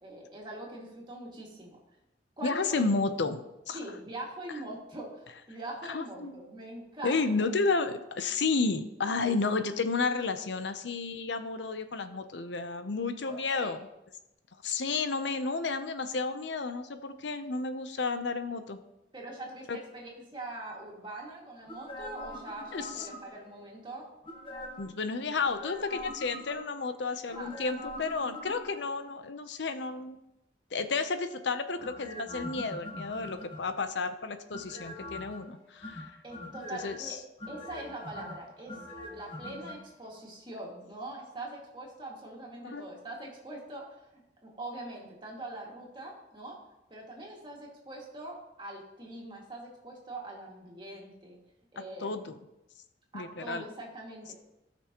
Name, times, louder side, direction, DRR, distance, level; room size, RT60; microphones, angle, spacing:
voice 1, 0.0-1.8 2.4-2.9 3.7-7.3 13.2-13.8 19.1-24.1 27.3-27.7 36.2-37.2 37.5-38.8 39.0-46.6 46.9-51.4 51.7-52.2 53.1-54.3, right 1 dB, 25° right, -2 dB, 2.2 m, -43 dB
voice 2, 2.4-3.4 3.7-3.8 5.9-6.4 7.0-13.8 14.6-18.8 19.7-19.8 22.7-23.1 24.8-30.2 30.7-36.2 36.7-37.2 42.6-42.9 52.0-52.4 53.1-53.6, left 4 dB, 75° left, 10 dB, 0.7 m, -32 dB
sound 1, 21.7-23.5 24.2-25.0 25.4-26.8 27.3-29.0 31.8-33.9 34.5-35.4 35.8-37.0 37.4-39.8 40.0-40.1, left 1 dB, 30° left, 1.5 m, -43 dB
16.5 x 6.1 x 3.0 m, 0.92 s
head